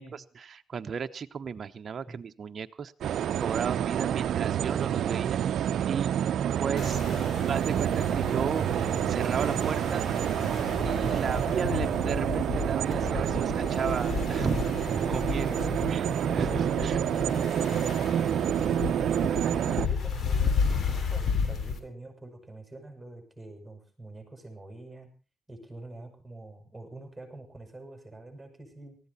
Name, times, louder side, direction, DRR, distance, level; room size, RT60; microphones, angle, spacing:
voice 1, 0.0-6.2 6.6-7.0 7.5-10.0 10.8-15.6 15.9-16.0 16.3-17.0 18.6-18.8, right 6 dB, 45° right, 6 dB, 1.0 m, -34 dB
sound 1, 3.0-19.9, right 10 dB, 70° right, 0.7 m, -28 dB
sound 2, 6.8-21.8, left 6 dB, 55° left, 2.8 m, -33 dB
voice 2, 7.1-7.5 14.3-14.8 16.5-25.1 25.5-29.0, right 2 dB, 10° right, 4 dB, 7.5 m, -45 dB
19.0 x 15.0 x 4.2 m, 0.34 s
cardioid pair, 90°, 0 cm